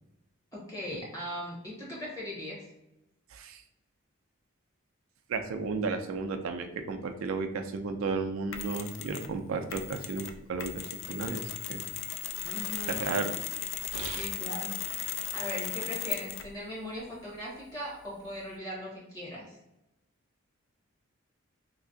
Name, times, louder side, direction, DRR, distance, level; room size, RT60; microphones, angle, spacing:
voice 1, 0.5-2.6 12.4-13.0 14.1-14.8 15.3-19.6, left 1 dB, 20° left, -6 dB, 1.2 m, -39 dB
voice 2, 3.3-3.6 5.3-11.9 12.9-13.4 13.9-14.3, right 4 dB, 80° right, 6 dB, 0.4 m, -34 dB
Mechanisms, 8.5-9.3 9.7-16.6, left 10 dB, 70° left, 0.3 m, -37 dB
3.3 x 2.8 x 2.6 m, 0.90 s
head